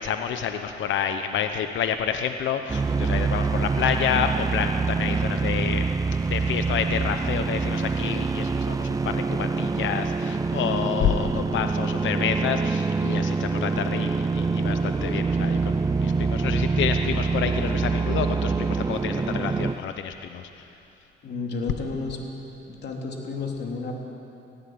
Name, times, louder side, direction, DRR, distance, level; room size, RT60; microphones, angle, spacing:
voice 1, 0.0-5.8 6.2-20.7, left 8 dB, 75° left, 7 dB, 1.0 m, -29 dB
sound 1, 2.7-19.8, right 4 dB, 20° right, 0.4 m, -25 dB
sound 2, 12.5-19.8, left 1 dB, 5° left, 5.2 m, -48 dB
voice 2, 21.2-22.2 22.7-24.1, left 3 dB, 55° left, 0 dB, 3.5 m, -32 dB
18.5 x 15.0 x 9.4 m, 2.8 s
cardioid pair, 90°, 20 cm